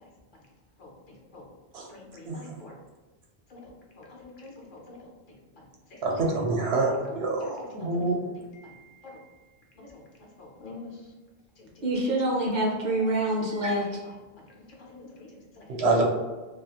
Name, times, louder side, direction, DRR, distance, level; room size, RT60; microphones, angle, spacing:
voice 1, 1.9-2.3 2.6-2.7 3.5-3.6 4.0-4.1 4.4-5.0 7.9-8.0 10.4-10.9 14.9-15.1, left 3 dB, 60° left, -2 dB, 0.7 m, -45 dB
voice 2, 6.0-8.2 13.6-13.7 15.7-16.0, right 3 dB, 85° right, 1 dB, 0.8 m, -26 dB
voice 3, 11.8-13.8, right 1 dB, 55° right, -2 dB, 0.6 m, -26 dB
2.4 x 2.3 x 2.7 m, 1.2 s
omnidirectional pair, 1.1 m